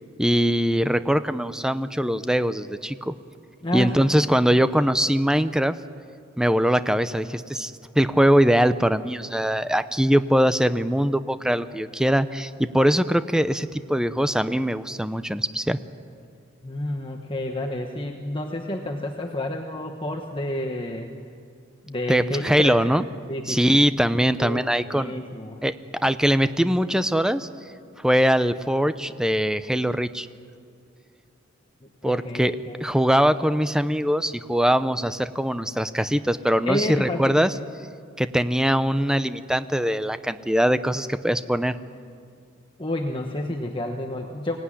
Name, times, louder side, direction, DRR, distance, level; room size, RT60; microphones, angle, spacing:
voice 1, 0.2-3.1 3.7-5.7 6.4-15.8 22.1-23.0 23.5-25.1 25.6-25.7 26.0-27.5 28.0-30.3 32.0-32.5 32.8-37.5 38.2-41.8, equal, 5° right, 12 dB, 0.6 m, -22 dB
voice 2, 3.6-4.1 16.6-21.1 21.9-22.8 23.3-23.8 24.4-25.7 32.0-32.8 36.6-37.7 42.8-44.6, left 1 dB, 25° left, 3 dB, 1.2 m, -30 dB
23.5 x 18.0 x 9.9 m, 2.3 s
head